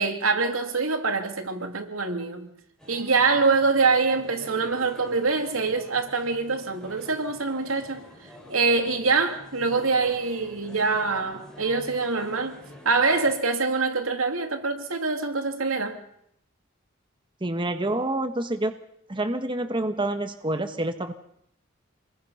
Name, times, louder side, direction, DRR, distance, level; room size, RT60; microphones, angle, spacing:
voice 1, 0.0-2.5 2.9-8.0 8.5-12.6 12.8-16.0, right 4 dB, 80° right, 2.8 m, -24 dB
sound 1, 2.8-13.4, left 1 dB, 5° left, 5.9 m, -47 dB
voice 2, 17.4-18.7 19.1-21.1, right 1 dB, 25° right, 1.4 m, -27 dB
27.5 x 21.5 x 5.7 m
head